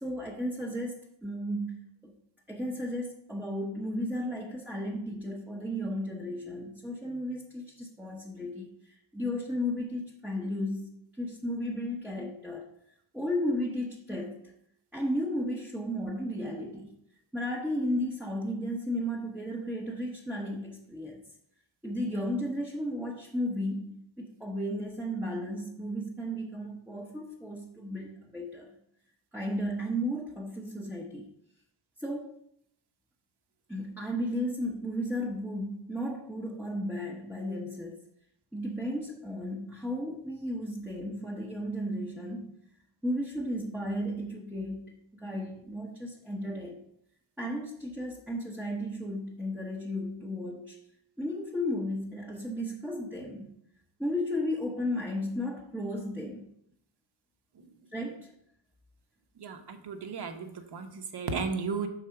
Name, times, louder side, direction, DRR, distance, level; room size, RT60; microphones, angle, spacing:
voice 1, 0.0-2.1 2.5-12.7 13.1-14.5 14.9-16.9 17.3-21.2 21.8-28.7 29.3-31.3 32.0-32.3 33.7-38.0 38.5-42.6 43.0-46.8 47.4-50.8 51.2-53.6 54.0-56.5 57.9-58.3, equal, 5° right, -3 dB, 0.8 m, -34 dB
voice 2, 59.4-61.9, right 5 dB, 50° right, 6 dB, 0.9 m, -34 dB
6.6 x 4.1 x 5.7 m, 0.72 s
wide cardioid pair, 150°, 49 cm